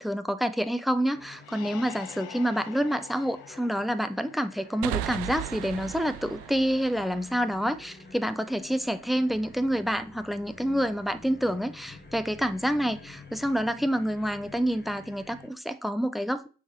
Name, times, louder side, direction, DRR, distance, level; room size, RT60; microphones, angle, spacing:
voice 1, 0.0-16.5, equal, ahead, 11 dB, 0.5 m, -28 dB
sound 1, 1.1-15.5, left 3 dB, 20° left, 1.4 m, -49 dB
sound 2, 1.4-5.0, left 13 dB, 55° left, 0.6 m, -46 dB
sound 3, 4.8-8.3, right 14 dB, 60° right, 0.6 m, -36 dB
5.8 x 4.2 x 5.0 m, 0.37 s
figure-of-eight pair, 45°, 46 cm